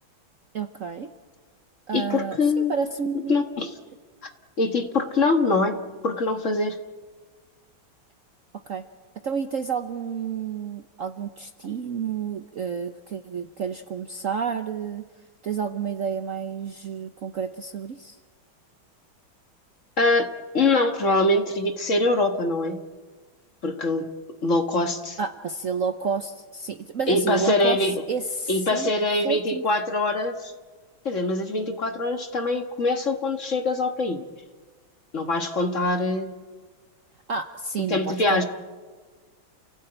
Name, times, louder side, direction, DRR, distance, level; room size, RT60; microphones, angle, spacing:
voice 1, 0.5-1.1 1.9-3.4 8.7-8.8 9.2-15.0 15.4-18.2 25.2-28.9 29.2-29.6 37.3-38.4, right 6 dB, 55° right, 8 dB, 1.0 m, -30 dB
voice 2, 1.9-2.7 3.3-3.7 4.6-6.8 20.0-22.8 23.6-24.1 24.4-25.2 27.1-28.0 28.5-30.5 31.1-34.3 35.1-36.4 37.8-38.4, left 2 dB, 40° left, 6 dB, 1.7 m, -23 dB
29.5 x 16.5 x 8.9 m, 1.4 s
omnidirectional pair, 2.2 m